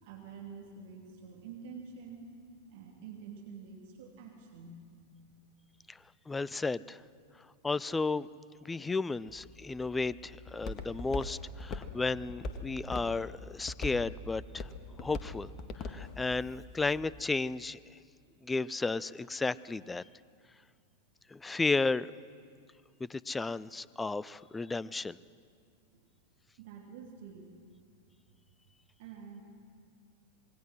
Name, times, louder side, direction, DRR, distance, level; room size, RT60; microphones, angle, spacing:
voice 1, 0.0-2.3 2.7-4.9 25.9-26.0 26.6-27.5 29.0-29.4, right 6 dB, 50° right, 1 dB, 2.7 m, -47 dB
voice 2, 6.3-7.0 7.6-8.3 8.6-14.7 15.0-15.5 15.8-17.9 18.4-20.0 21.3-22.1 23.0-25.2, left 3 dB, 10° left, 21 dB, 0.5 m, -33 dB
Walk footsteps, 9.3-17.2, left 3 dB, 30° left, 1.8 m, -42 dB
26.5 x 20.5 x 6.3 m, 2.2 s
figure-of-eight pair, 90°, 0 cm